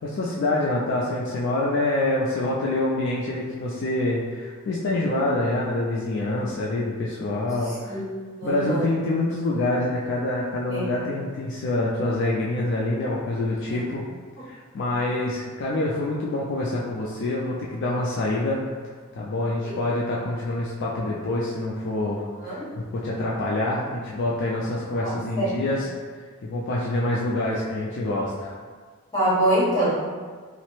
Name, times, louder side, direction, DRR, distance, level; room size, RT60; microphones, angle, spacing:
voice 1, 0.0-8.0 8.4-14.0 14.4-18.6 19.1-25.9 26.5-28.6, left 2 dB, 55° left, -5 dB, 0.3 m, -26 dB
voice 2, 7.6-8.0 8.4-8.9 10.7-10.9 13.7-13.9 19.6-19.8 22.3-22.7 25.0-25.6 29.1-29.9, right 1 dB, 15° left, -11 dB, 1.1 m, -25 dB
3.1 x 2.0 x 3.0 m, 1.6 s
head